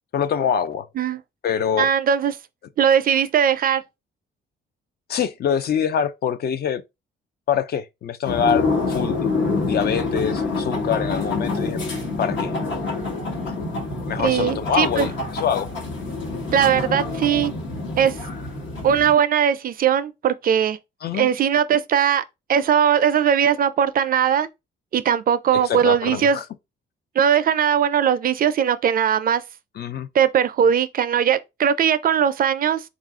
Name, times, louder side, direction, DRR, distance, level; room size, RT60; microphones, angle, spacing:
voice 1, 0.1-0.9 1.4-1.9 5.1-6.8 7.5-9.3 9.6-11.8 12.2-12.5 13.5-13.6 14.1-15.7 21.0-21.3 25.5-26.4 29.8-30.1, left 8 dB, 55° left, 0.5 m, -24 dB
voice 2, 1.8-2.3 2.8-3.8 14.2-15.1 16.5-17.5 18.0-18.2 18.8-20.8 21.2-22.2 22.5-24.5 24.9-26.4 27.2-29.4 30.1-32.8, right 8 dB, 45° right, 0.4 m, -19 dB
sound 1, 8.3-19.1, left 3 dB, 70° left, 1.2 m, -26 dB
3.8 x 2.4 x 3.6 m
cardioid pair, 90°, 20 cm